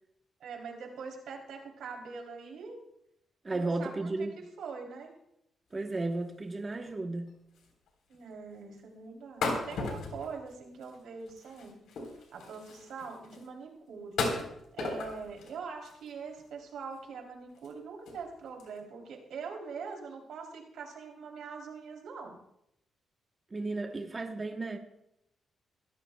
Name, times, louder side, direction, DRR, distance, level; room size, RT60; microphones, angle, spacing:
voice 1, 0.4-2.8 3.5-5.1 8.1-11.7 12.3-14.2 14.7-22.4, right 5 dB, 85° right, 1 dB, 3.1 m, -43 dB
voice 2, 3.4-4.3 5.7-7.4 23.5-24.8, right 2 dB, 25° right, 4 dB, 1.0 m, -34 dB
sound 1, 6.7-6.9 7.3-7.4 7.5-7.9 8.1-8.2 9.4-11.0 11.3-13.5 14.1-15.5 15.8-16.4 17.0-17.1 17.5-17.7 18.1-18.3 18.6-18.8, left 3 dB, 85° left, 3.7 m, -36 dB
22.0 x 15.0 x 2.3 m, 0.79 s
cardioid pair, 130°, 0 cm